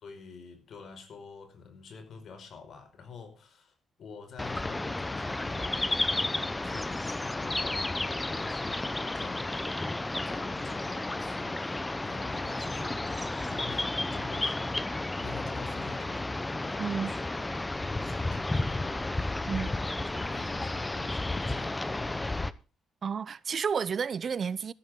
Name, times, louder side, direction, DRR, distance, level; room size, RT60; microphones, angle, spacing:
voice 1, 0.0-8.8 9.1-9.9 10.3-22.5, left 5 dB, 60° left, 5.3 m, -48 dB
sound 1, 4.4-22.5, left 2 dB, 15° left, 0.8 m, -32 dB
voice 2, 16.8-17.2 19.5-19.7 23.0-24.7, right 6 dB, 45° right, 0.6 m, -31 dB
14.5 x 13.0 x 3.7 m
cardioid pair, 90°, 0 cm